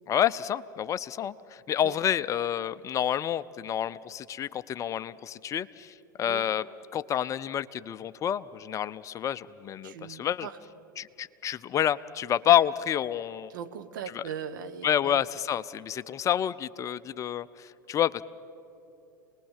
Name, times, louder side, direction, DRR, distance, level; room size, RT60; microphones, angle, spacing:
voice 1, 0.1-6.6 6.9-10.5 11.0-13.5 14.1-14.2 14.8-18.2, left 10 dB, 30° left, 16 dB, 0.5 m, -29 dB
voice 2, 9.8-10.6 13.5-15.2, right 8 dB, 65° right, 10 dB, 1.2 m, -39 dB
27.5 x 20.5 x 7.4 m, 2.9 s
hypercardioid pair, 90°, 11 cm